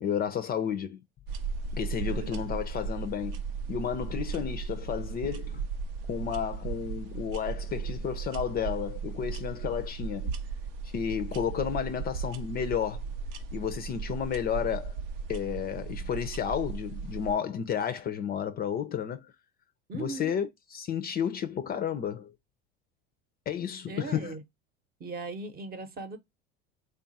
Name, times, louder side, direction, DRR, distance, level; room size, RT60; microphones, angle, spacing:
voice 1, 0.0-1.0 1.7-3.4 3.7-5.6 6.1-10.3 10.9-13.0 13.5-15.0 15.3-19.2 19.9-22.3 23.5-24.4, left 8 dB, 35° left, 0.4 m, -32 dB
sound 1, 1.3-17.3, right 5 dB, 75° right, 0.6 m, -36 dB
voice 2, 2.0-2.6 19.9-20.4 23.9-24.4 25.0-26.2, right 3 dB, 30° right, 0.8 m, -39 dB
3.4 x 2.3 x 3.9 m
supercardioid pair, 100°, 29 cm